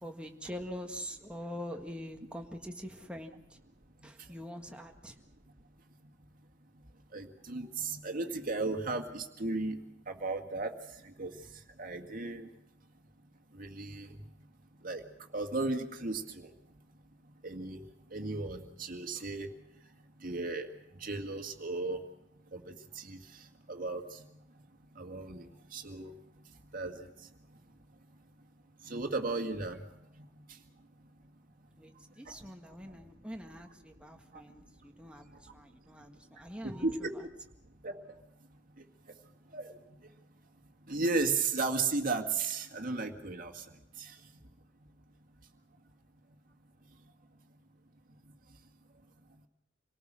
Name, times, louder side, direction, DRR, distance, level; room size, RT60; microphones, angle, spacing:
voice 1, 0.0-3.6 4.0-5.2 31.8-35.3 35.5-37.1, equal, 5° right, 3 dB, 1.7 m, -44 dB
voice 2, 7.1-9.8 10.1-10.7 11.0-11.4 11.8-12.5 13.5-14.1 14.8-15.0 15.3-16.5 17.4-17.8 18.1-19.5 20.2-20.7 21.0-22.0 22.5-23.2 23.7-24.2 25.0-25.4 25.7-26.1 26.7-27.1 28.8-29.8 30.2-30.3 36.6-37.1 37.8-38.0 39.5-39.8 40.9-43.6 44.0-44.1, right 3 dB, 50° right, 4 dB, 2.0 m, -35 dB
27.0 x 18.5 x 6.3 m, 0.80 s
head